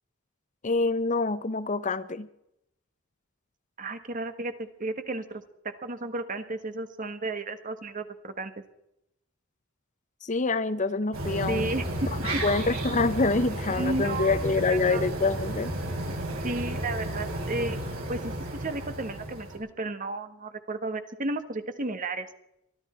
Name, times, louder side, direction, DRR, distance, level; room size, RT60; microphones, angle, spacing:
voice 1, 0.6-2.3 10.2-11.7 12.2-15.7, left 3 dB, 35° left, 13 dB, 0.8 m, -26 dB
voice 2, 3.8-8.5 11.5-13.0 13.7-15.0 16.4-17.8 18.1-22.3, right 2 dB, 40° right, 9 dB, 1.4 m, -33 dB
sound 1, 11.1-19.6, right 1 dB, 90° right, 6.9 m, -32 dB
23.5 x 13.5 x 4.4 m, 0.82 s
head